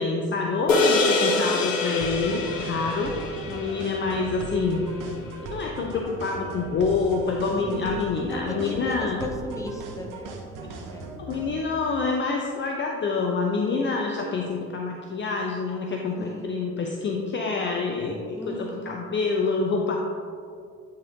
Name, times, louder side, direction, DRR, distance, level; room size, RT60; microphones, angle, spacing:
voice 1, 0.0-4.9 5.4-9.2 11.2-20.0, left 4 dB, 30° left, 1 dB, 0.5 m, -27 dB
sound 1, 0.7-5.3, left 2 dB, 85° left, 0.5 m, -26 dB
voice 2, 1.4-1.8 7.6-11.2 16.2-16.6 18.3-19.0, left 1 dB, 10° left, 2 dB, 0.9 m, -38 dB
sound 2, 2.0-11.6, right 3 dB, 55° right, 0.8 m, -38 dB
9.3 x 3.7 x 2.9 m, 2.3 s
figure-of-eight pair, 45°, 38 cm